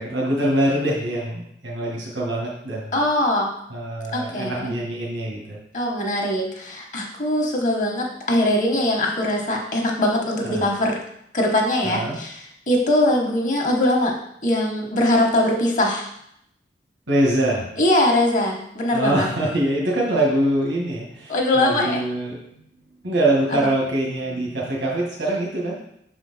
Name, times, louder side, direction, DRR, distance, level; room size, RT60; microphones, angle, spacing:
voice 1, 0.0-2.9 3.7-5.6 10.4-10.6 11.8-12.2 17.1-17.7 18.9-22.6 23.0-25.8, right 1 dB, 90° right, -3 dB, 1.4 m, -24 dB
voice 2, 2.9-3.5 4.1-4.7 5.7-11.0 11.3-14.1 14.4-16.1 17.8-19.3 21.3-22.0 23.5-23.7, left 1 dB, 45° left, 1 dB, 1.1 m, -21 dB
6.3 x 4.4 x 4.1 m, 0.74 s
head